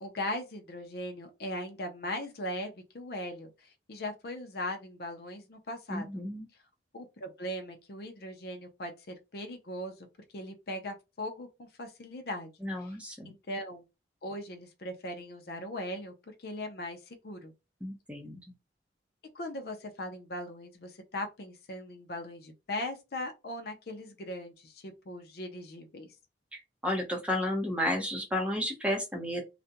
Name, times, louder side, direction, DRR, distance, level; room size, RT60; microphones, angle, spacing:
voice 1, 0.0-6.2 6.9-10.1 10.3-12.5 12.8-12.9 13.3-13.8 14.2-17.5 19.3-26.2, left 1 dB, 60° left, 0.5 m, -39 dB
voice 2, 5.9-6.4 12.6-13.3 17.8-18.4 26.5-29.4, left 1 dB, 5° right, 0.7 m, -32 dB
2.4 x 2.1 x 2.7 m
head